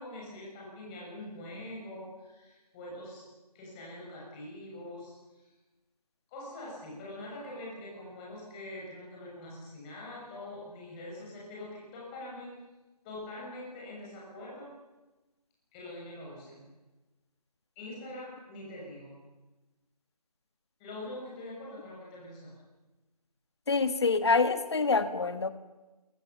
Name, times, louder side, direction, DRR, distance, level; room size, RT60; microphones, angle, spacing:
voice 1, 0.0-3.2 3.5-5.4 6.3-12.5 13.0-14.7 15.7-16.6 17.8-19.1 20.8-22.6, left 1 dB, 15° left, -4 dB, 6.9 m, -44 dB
voice 2, 23.7-25.5, left 4 dB, 40° left, 11 dB, 1.7 m, -26 dB
27.0 x 22.0 x 7.2 m, 1.1 s
figure-of-eight pair, 165°, 20 cm